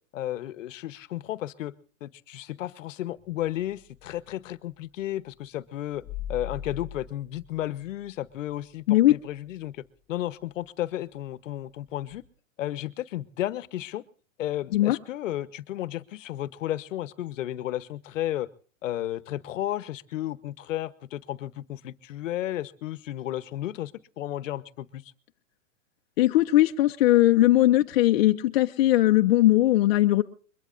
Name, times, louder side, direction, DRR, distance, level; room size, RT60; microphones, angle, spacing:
voice 1, 0.1-1.7 2.0-6.0 6.3-9.8 10.1-12.2 12.6-14.0 14.4-18.5 18.8-25.1, left 13 dB, 65° left, 16 dB, 1.0 m, -33 dB
sound 1, 3.2-4.4 5.9-8.5 9.0-9.1 12.1-12.3, left 8 dB, 15° left, 1.7 m, -40 dB
voice 2, 26.2-30.2, left 15 dB, 50° left, 5 dB, 0.7 m, -19 dB
22.5 x 21.5 x 2.5 m, 0.42 s
hypercardioid pair, 155°, 40 cm